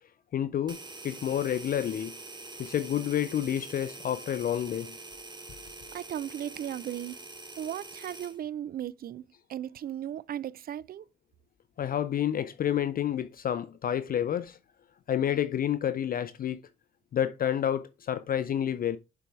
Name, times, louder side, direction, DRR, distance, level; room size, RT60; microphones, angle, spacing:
voice 1, 0.3-0.8 1.0-2.1 2.6-4.9 11.8-14.6 15.1-16.6 17.1-19.0, left 10 dB, 45° left, 0.5 m, -29 dB
sound 1, 0.7-8.4, right 3 dB, 20° right, 1.4 m, -45 dB
voice 2, 5.9-7.2 7.6-9.2 9.5-11.1, right 10 dB, 50° right, 0.4 m, -36 dB
6.8 x 4.6 x 4.6 m
cardioid pair, 90°, 20 cm